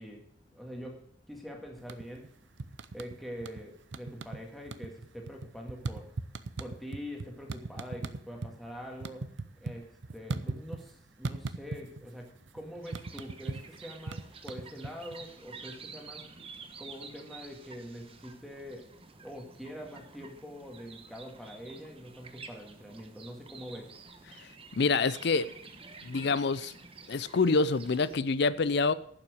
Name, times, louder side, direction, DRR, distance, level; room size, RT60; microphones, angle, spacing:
voice 1, 0.0-2.3 2.9-6.2 6.6-9.3 9.6-16.3 16.8-18.9 19.2-24.0, equal, ahead, 0 dB, 1.8 m, -44 dB
sound 1, 1.8-2.3 2.6-3.6 3.9-4.4 4.7-8.5 8.8-10.9 11.2-12.1 12.4-15.2, right 3 dB, 65° right, 0.6 m, -38 dB
sound 2, 12.8-28.2, right 4 dB, 30° right, 1.0 m, -50 dB
voice 2, 24.4-25.5 26.0-26.8 27.1-28.9, left 4 dB, 60° left, 17 dB, 0.5 m, -27 dB
11.0 x 6.0 x 7.7 m, 0.63 s
head